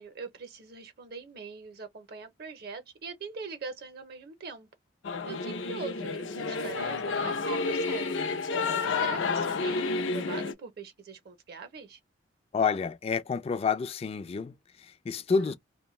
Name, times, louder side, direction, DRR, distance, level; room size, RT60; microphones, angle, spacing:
voice 1, 0.0-4.7 5.3-8.3 8.8-12.0 15.4-15.5, right 4 dB, 55° right, 0.6 m, -42 dB
Singing / Musical instrument, 5.0-10.5, left 4 dB, 85° left, 0.6 m, -30 dB
voice 2, 12.5-15.5, left 5 dB, 30° left, 0.3 m, -29 dB
2.5 x 2.1 x 3.0 m
head